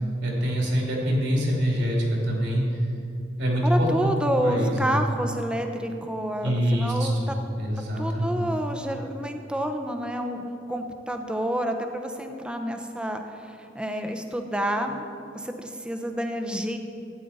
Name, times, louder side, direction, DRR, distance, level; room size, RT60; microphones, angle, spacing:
voice 1, 0.2-2.6 3.4-3.9 4.4-4.9 6.4-8.5, equal, 75° right, -2 dB, 2.5 m, -25 dB
voice 2, 3.6-7.4 8.0-15.0 15.3-16.8, equal, 5° right, 5 dB, 0.7 m, -29 dB
13.0 x 9.2 x 4.1 m, 2.7 s
head